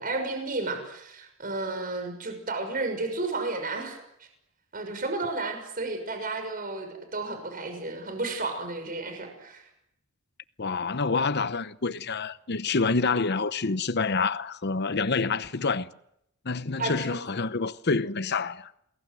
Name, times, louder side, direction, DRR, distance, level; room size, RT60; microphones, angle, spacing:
voice 1, 0.0-4.3 4.7-9.7 16.8-17.1, right 3 dB, 40° right, 6.3 m, -32 dB
voice 2, 10.6-15.9 16.4-18.7, left 4 dB, 50° left, 0.9 m, -27 dB
29.0 x 21.5 x 7.8 m
head